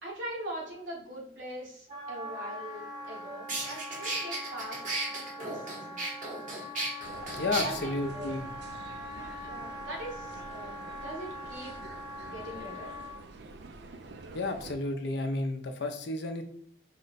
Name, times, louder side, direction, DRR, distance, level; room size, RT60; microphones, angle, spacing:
voice 1, 0.0-4.8 5.1-6.0 7.6-8.5 9.4-11.8 12.2-12.9, right 1 dB, 80° right, -4 dB, 1.5 m, -42 dB
Wind instrument woodwind instrument, 1.9-13.2, equal, 25° right, 0.7 m, -42 dB
sound 1, 3.0-3.1 3.5-7.6, right 2 dB, 40° right, 1.1 m, -35 dB
sound 2, 7.0-14.7, right 3 dB, 60° right, 0.4 m, -47 dB
voice 2, 7.3-8.5 14.3-16.4, left 2 dB, 60° left, 6 dB, 0.5 m, -32 dB
4.4 x 2.1 x 3.9 m, 0.66 s
head